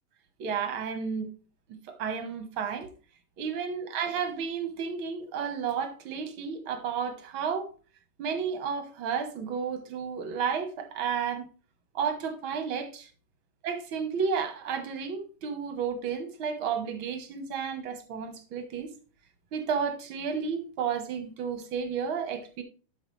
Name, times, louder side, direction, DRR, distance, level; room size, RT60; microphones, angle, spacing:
voice 1, 0.4-1.3 1.7-2.9 3.4-7.7 8.2-11.4 11.9-13.1 13.6-18.9 19.5-22.6, right 6 dB, 55° right, 1.5 m, -32 dB
12.0 x 5.8 x 3.2 m
omnidirectional pair, 3.6 m